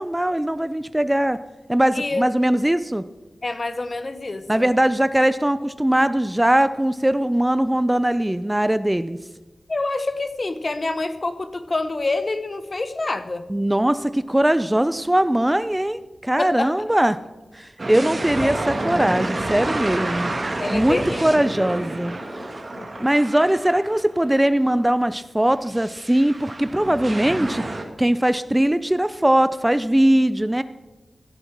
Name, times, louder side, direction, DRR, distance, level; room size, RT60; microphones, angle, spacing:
voice 1, 0.0-1.4 1.7-3.0 4.5-9.2 13.5-17.2 17.5-20.3 20.7-22.5 23.0-27.6 28.0-30.6, right 1 dB, 10° right, 13 dB, 0.5 m, -20 dB
voice 2, 3.4-4.7 9.7-13.4 16.4-16.7 18.1-18.5 20.6-21.2 22.4-22.5 22.8-23.1, left 2 dB, 45° left, 11 dB, 1.0 m, -27 dB
sound 1, 17.8-24.4 24.8-24.9 25.7-27.8, right 2 dB, 45° right, 2.1 m, -29 dB
15.5 x 7.1 x 7.2 m, 1.1 s
wide cardioid pair, 70°, 0 cm